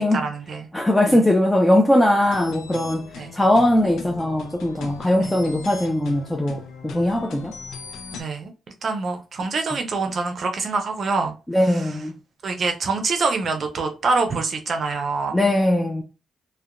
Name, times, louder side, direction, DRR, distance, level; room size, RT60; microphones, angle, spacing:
voice 1, 0.0-0.7 1.1-1.2 3.2-3.3 5.2-5.3 8.1-8.5 8.8-11.3 11.6-12.0 12.4-15.4, right 4 dB, 50° right, 0.5 m, -25 dB
voice 2, 0.7-7.6 11.5-12.1 15.3-16.0, left 1 dB, 10° left, 0.4 m, -20 dB
sound 1, 2.2-8.2, left 5 dB, 75° left, 0.4 m, -39 dB
2.7 x 2.1 x 2.4 m
cardioid pair, 90°, 0 cm